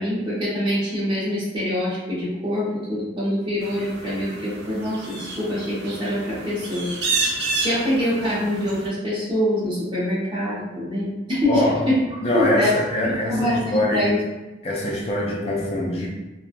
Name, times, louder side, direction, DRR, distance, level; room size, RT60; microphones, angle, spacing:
voice 1, 0.0-6.9 7.6-12.0 12.3-14.1, equal, 25° right, -9 dB, 1.0 m, -24 dB
sound 1, 3.6-8.9, right 3 dB, 65° right, 0.6 m, -30 dB
voice 2, 11.5-11.8 12.2-14.1 14.6-16.1, left 1 dB, 35° left, -3 dB, 0.4 m, -23 dB
3.0 x 2.3 x 2.5 m, 1.1 s
head